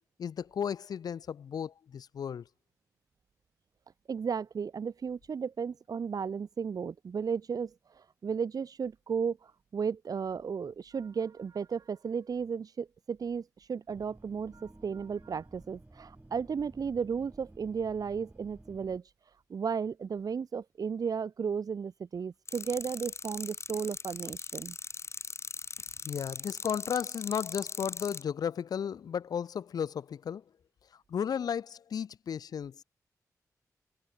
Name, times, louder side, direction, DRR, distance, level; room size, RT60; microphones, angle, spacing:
voice 1, 0.2-2.4 26.0-30.4 31.1-32.8, left 8 dB, 80° left, 0.6 m, -34 dB
voice 2, 4.1-19.0 19.5-24.8, right 6 dB, 70° right, 1.6 m, -34 dB
sound 1, 13.9-19.0, right 2 dB, 20° right, 7.9 m, -54 dB
sound 2, 22.5-28.2, left 4 dB, 45° left, 0.9 m, -40 dB
cardioid pair, 60°, 7 cm